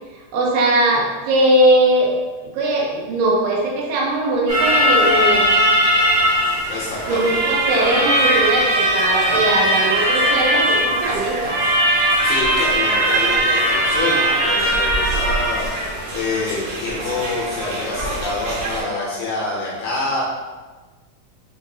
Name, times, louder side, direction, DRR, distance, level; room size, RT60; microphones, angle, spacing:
voice 1, 0.3-2.1 2.4-5.7 7.0-11.6, right 1 dB, 90° right, -3 dB, 2.7 m, -20 dB
sound 1, 4.5-18.8, right 1 dB, 65° right, 2.0 m, -19 dB
voice 2, 6.7-7.4 9.3-9.4 12.2-20.2, left 3 dB, 75° left, -4 dB, 1.9 m, -26 dB
6.4 x 2.7 x 2.7 m, 1.3 s
omnidirectional pair, 4.0 m